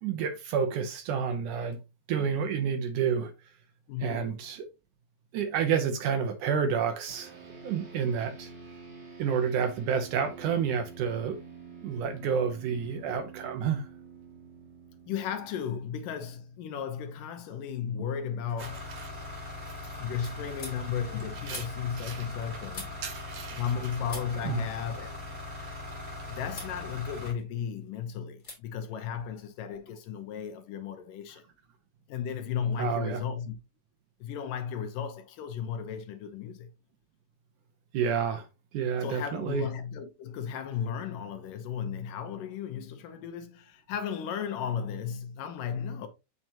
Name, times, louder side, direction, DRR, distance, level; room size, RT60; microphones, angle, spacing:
voice 1, 0.0-1.8 2.1-3.3 4.0-4.7 5.3-7.4 7.6-8.5 9.2-11.4 11.8-13.8 18.6-19.1 19.7-19.8 21.5-21.7 22.0-22.3 23.0-23.6 24.4-24.6 32.8-33.2 37.9-38.5 38.7-39.7, right 7 dB, 75° right, 2.0 m, -29 dB
voice 2, 3.9-4.3 15.1-18.9 20.0-23.0 23.6-25.3 26.3-31.4 32.1-33.6 34.2-36.7 39.0-46.1, left 8 dB, 75° left, 2.3 m, -35 dB
sound 1, 7.1-16.7, right 5 dB, 50° right, 3.8 m, -48 dB
sound 2, 17.8-18.4 18.7-23.8 24.1-26.1 26.5-26.8 27.2-27.9 28.4-28.6 28.9-29.9, left 3 dB, 30° left, 2.7 m, -48 dB
sound 3, 18.6-27.3, left 2 dB, 25° right, 4.8 m, -41 dB
7.8 x 5.9 x 2.9 m
omnidirectional pair, 4.2 m